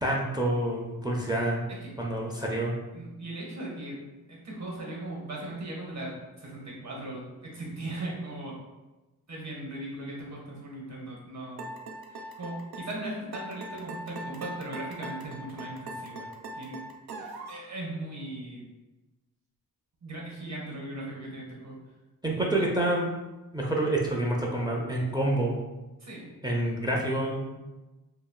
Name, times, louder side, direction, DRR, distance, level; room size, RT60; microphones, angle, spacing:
voice 1, 0.0-1.7 2.0-2.7 22.2-23.1 23.5-25.6 26.4-27.5, right 1 dB, 10° right, -2 dB, 0.5 m, -27 dB
voice 2, 2.9-4.0 4.3-8.5 9.3-11.7 12.1-16.3 16.5-16.8 17.5-18.7 20.0-21.8 26.0-26.3, right 1 dB, 45° right, -2 dB, 1.0 m, -38 dB
sound 1, 11.6-17.7, right 1 dB, 70° right, 0.5 m, -40 dB
2.3 x 2.0 x 3.6 m, 1.1 s
cardioid pair, 45°, 38 cm